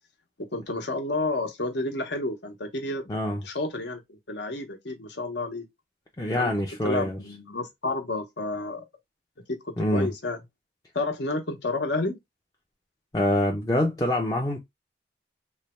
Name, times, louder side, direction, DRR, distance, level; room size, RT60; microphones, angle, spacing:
voice 1, 0.4-3.0 3.4-5.6 6.3-6.5 6.8-8.8 9.9-10.4 10.9-12.2, left 2 dB, 70° left, 0.9 m, -30 dB
voice 2, 3.1-3.4 6.2-7.2 9.8-10.1 13.1-14.6, left 1 dB, 20° left, 0.5 m, -25 dB
3.2 x 2.2 x 4.1 m
head